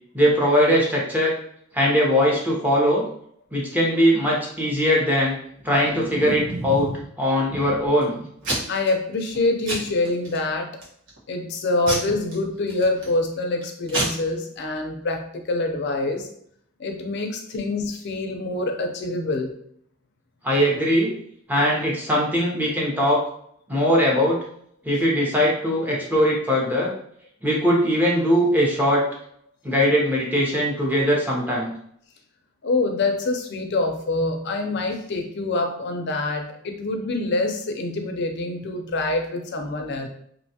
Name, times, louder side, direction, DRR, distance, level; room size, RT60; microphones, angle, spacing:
voice 1, 0.1-1.3 1.7-3.0 3.5-5.4 5.6-6.9 7.2-8.2 20.4-21.1 21.5-23.2 23.7-24.4 24.8-26.9 27.4-29.0 29.6-31.7, equal, 10° right, -4 dB, 0.7 m, -20 dB
Packing tape duct tape / Tearing, 5.7-7.0 7.5-8.0 8.4-8.9 9.2-9.4 9.7-10.4 10.8-11.2 11.9-13.1 13.6-13.7 13.9-14.0, right 1 dB, 70° right, 1.1 m, -29 dB
voice 2, 8.7-10.7 11.3-16.3 16.8-19.5 32.6-40.1, left 2 dB, 60° left, 4 dB, 0.5 m, -25 dB
2.7 x 2.3 x 2.7 m, 0.67 s
head